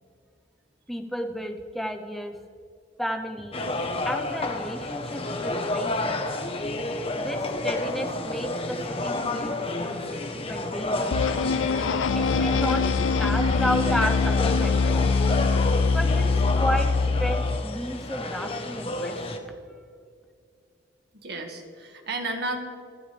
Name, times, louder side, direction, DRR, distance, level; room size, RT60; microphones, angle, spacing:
voice 1, 0.9-2.4 3.0-3.6 4.0-6.2 7.2-10.0 10.3-11.1 12.1-15.1 15.9-16.3 16.6-16.9 17.2-19.5, equal, ahead, 4 dB, 1.0 m, -32 dB
sound 1, 3.5-19.4, left 2 dB, 30° left, 1.1 m, -30 dB
sound 2, 11.1-17.6, left 4 dB, 75° left, 0.4 m, -23 dB
voice 2, 21.2-22.6, right 2 dB, 55° right, 3 dB, 2.0 m, -32 dB
25.5 x 12.0 x 3.5 m, 2.3 s
head